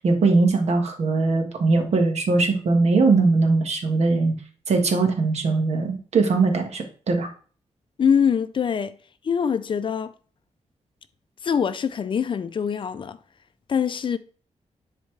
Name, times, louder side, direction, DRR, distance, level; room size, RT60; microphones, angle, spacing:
voice 1, 0.0-4.4 4.7-7.3, right 3 dB, 65° right, 1.6 m, -20 dB
voice 2, 8.0-9.0 9.2-10.1 11.4-13.2 13.7-14.2, left 7 dB, 45° left, 0.4 m, -23 dB
10.5 x 4.1 x 3.3 m
wide cardioid pair, 175°, 12 cm